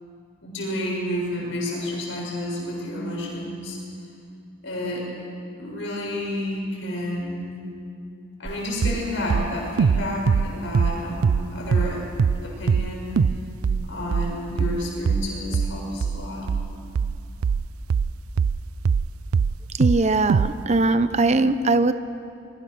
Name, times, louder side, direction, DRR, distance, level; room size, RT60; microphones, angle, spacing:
voice 1, 0.4-3.8 4.6-5.1 5.6-7.6 8.4-12.0 12.4-13.2 13.8-16.5, left 1 dB, 60° left, -2 dB, 6.8 m, -30 dB
sound 1, 8.5-8.6 8.8-9.0 9.3-11.5 11.7-11.9 12.2-12.4 12.7-12.9 13.2-13.4 13.6-19.1 19.3-20.0 20.3-20.5, right 6 dB, 85° right, 0.4 m, -21 dB
voice 2, 19.7-21.9, right 2 dB, 30° right, 11 dB, 0.8 m, -20 dB
26.0 x 21.5 x 6.3 m, 2.5 s
head